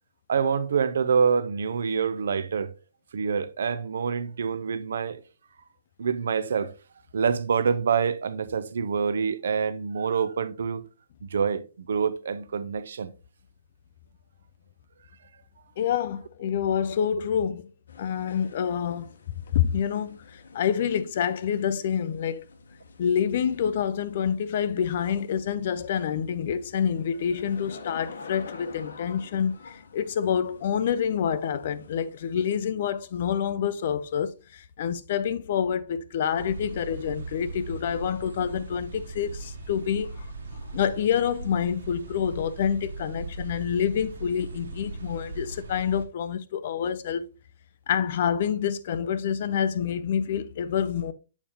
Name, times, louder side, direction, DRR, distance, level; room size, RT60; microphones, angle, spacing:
voice 1, 0.3-2.7 3.1-5.2 6.0-6.7 7.1-10.8 11.3-13.1, right 6 dB, 60° right, 0.5 m, -26 dB
voice 2, 15.8-17.7 18.0-19.1 19.5-22.4 23.0-40.3 40.5-47.2 47.9-51.1, left 8 dB, 35° left, 0.4 m, -27 dB
sound 1, 17.9-32.6, left 4 dB, 80° left, 1.0 m, -48 dB
sound 2, 36.4-46.1, right 3 dB, 90° right, 1.3 m, -39 dB
7.2 x 5.0 x 2.9 m
hypercardioid pair, 180°, 0 cm